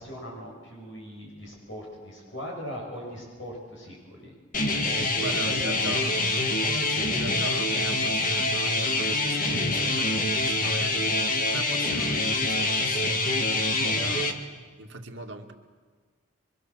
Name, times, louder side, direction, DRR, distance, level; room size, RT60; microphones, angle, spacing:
voice 1, 0.0-4.3 5.3-6.0 13.8-14.2, equal, 70° left, -1 dB, 7.7 m, -40 dB
sound 1, 4.5-14.3, left 2 dB, 45° left, 1.8 m, -25 dB
voice 2, 5.0-6.1 6.8-13.5 14.0-15.5, right 2 dB, 65° right, 2 dB, 2.4 m, -41 dB
24.5 x 24.5 x 7.7 m, 1.5 s
head